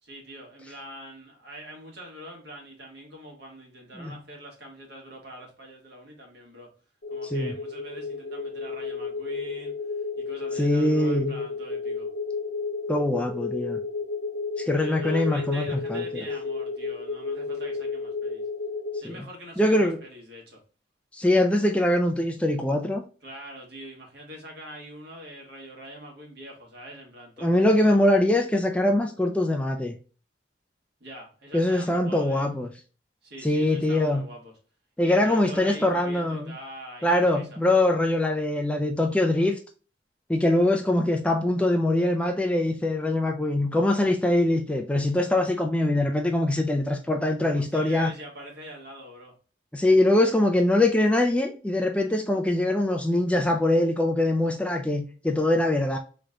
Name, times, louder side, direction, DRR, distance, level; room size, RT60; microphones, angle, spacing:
voice 1, 0.0-6.7 7.1-9.7 10.2-12.1 14.7-18.4 19.0-20.6 23.2-28.0 31.0-32.5 33.2-34.5 35.0-37.6 47.5-49.3, equal, 65° right, 1.6 m, -44 dB
sound 1, 7.0-19.0, left 4 dB, 60° left, 0.6 m, -32 dB
voice 2, 7.2-7.5 10.6-11.4 12.9-13.8 14.6-16.2 19.0-19.2 19.6-20.0 21.1-23.0 27.4-30.0 31.5-32.7 33.4-34.2 35.0-36.6 37.0-39.6 40.3-48.1 49.7-56.0, left 1 dB, 5° left, 0.3 m, -23 dB
3.9 x 3.3 x 2.3 m
head